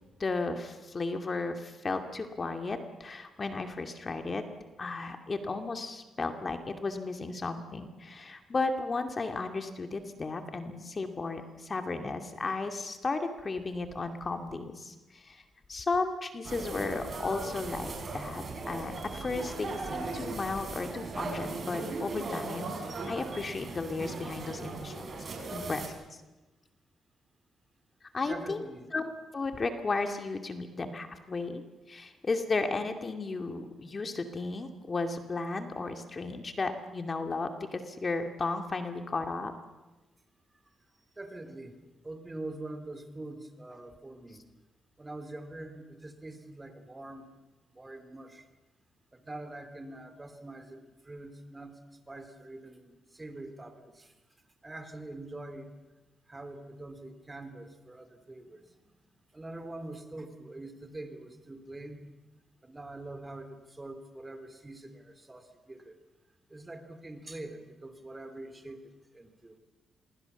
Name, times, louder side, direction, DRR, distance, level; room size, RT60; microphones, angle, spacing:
voice 1, 0.2-4.4 4.8-15.4 15.7-22.8 23.1-25.0 25.5-25.8 26.1-26.2 28.1-28.6 28.9-31.6 31.9-39.5, left 3 dB, 35° left, 6 dB, 2.4 m, -34 dB
sound 1, 16.4-25.9, right 3 dB, 50° right, 6.6 m, -38 dB
voice 2, 28.2-28.9 41.2-41.8 42.0-44.4 45.0-47.3 47.7-48.5 49.1-51.8 52.1-54.1 54.6-55.7 56.3-59.0 59.3-62.0 62.6-65.9 66.5-69.6, right 2 dB, 20° right, 9 dB, 3.5 m, -44 dB
26.5 x 22.5 x 7.2 m, 1.1 s
cardioid pair, 75°, 0 cm